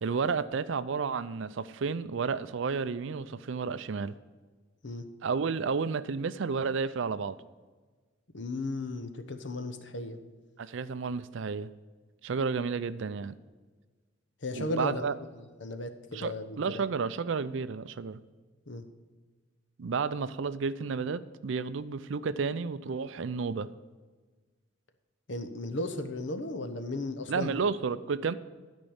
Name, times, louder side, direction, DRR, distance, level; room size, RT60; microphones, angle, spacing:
voice 1, 0.0-4.1 5.2-7.4 10.6-11.7 12.2-13.3 14.5-15.1 16.1-18.2 19.8-23.7 27.3-28.3, right 5 dB, 70° right, 15 dB, 0.4 m, -31 dB
voice 2, 8.3-10.2 14.4-15.0 15.3-16.8 18.7-18.8 25.3-27.6, left 2 dB, 65° left, 9 dB, 0.9 m, -35 dB
12.0 x 5.3 x 7.1 m, 1.4 s
head